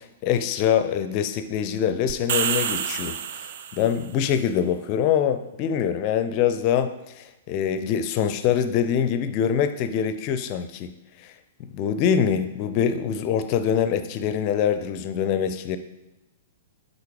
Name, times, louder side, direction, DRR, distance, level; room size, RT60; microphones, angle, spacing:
voice 1, 0.0-3.2 3.7-10.9 11.6-15.8, left 8 dB, 40° left, 10 dB, 0.6 m, -24 dB
sound 1, 2.1-4.0, right 8 dB, 55° right, 0.4 m, -28 dB
8.3 x 4.1 x 4.8 m, 1.0 s
figure-of-eight pair, 110°, 0 cm